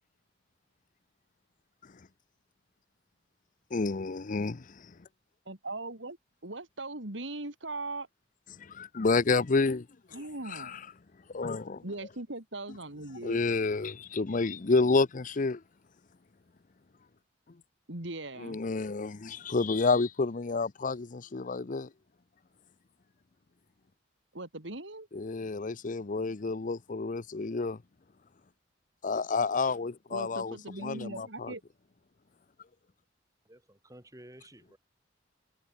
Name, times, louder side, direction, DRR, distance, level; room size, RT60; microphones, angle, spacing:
voice 1, 3.7-4.9 8.6-9.9 10.5-10.8 11.3-11.8 13.2-15.6 18.4-21.9 25.1-27.8 29.0-31.5, left 3 dB, 45° left, 0.6 m, -29 dB
voice 2, 5.5-6.2 6.4-8.1 10.1-10.8 11.8-13.4 17.9-18.6 24.3-25.1 30.1-31.6, right 2 dB, 75° right, 3.5 m, -39 dB
voice 3, 33.4-34.8, right 1 dB, 20° right, 5.6 m, -53 dB
head